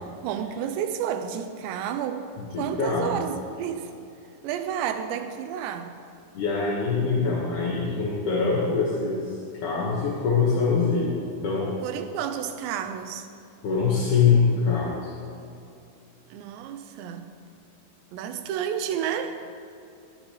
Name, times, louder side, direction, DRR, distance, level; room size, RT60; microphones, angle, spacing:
voice 1, 0.2-2.3 2.6-3.9 4.4-5.9 11.8-13.3 16.3-17.3 18.1-19.5, right 9 dB, 85° right, 8 dB, 3.0 m, -31 dB
voice 2, 2.4-3.2 6.3-9.4 9.6-11.7 13.6-15.1, left 5 dB, 55° left, -6 dB, 2.5 m, -24 dB
20.5 x 11.0 x 3.3 m, 2.6 s
omnidirectional pair, 5.0 m